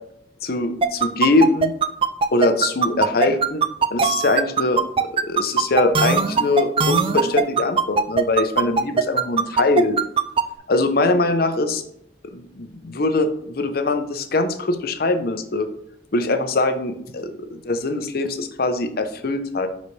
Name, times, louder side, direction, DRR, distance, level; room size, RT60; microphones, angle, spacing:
voice 1, 0.4-1.7 2.3-3.6 3.9-10.0 10.7-11.8 12.2-15.7 16.1-19.7, left 2 dB, 55° left, 8 dB, 0.8 m, -22 dB
sound 1, 0.8-10.4, right 5 dB, 30° right, 0.4 m, -19 dB
9.6 x 4.2 x 3.3 m, 0.73 s
head